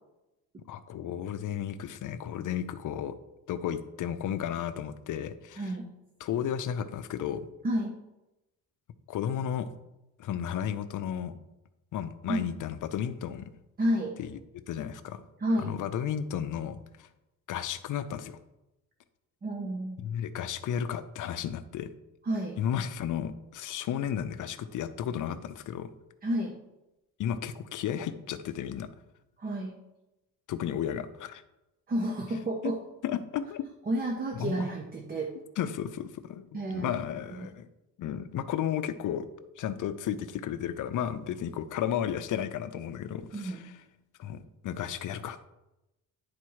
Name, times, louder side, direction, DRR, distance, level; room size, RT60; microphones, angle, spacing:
voice 1, 0.7-3.2 3.5-5.7 6.2-7.5 9.1-9.7 10.2-11.3 11.9-13.5 14.2-14.4 14.7-15.2 15.6-17.1 17.5-18.4 20.0-21.9 22.6-25.9 27.2-28.9 30.5-31.4 32.6-32.7 33.0-33.6 34.3-34.7 35.6-37.7 38.0-39.3 39.6-43.6 44.2-45.5, left 9 dB, 60° left, 12 dB, 0.6 m, -33 dB
voice 2, 13.8-14.2 15.4-15.8 19.4-20.0 22.2-22.6 26.2-26.5 29.4-29.8 31.9-32.8 33.9-35.3 36.5-36.9 37.3-37.5 43.3-43.7, right 1 dB, 25° right, 3 dB, 0.8 m, -30 dB
9.8 x 4.2 x 4.7 m, 0.96 s
cardioid pair, 140°, 36 cm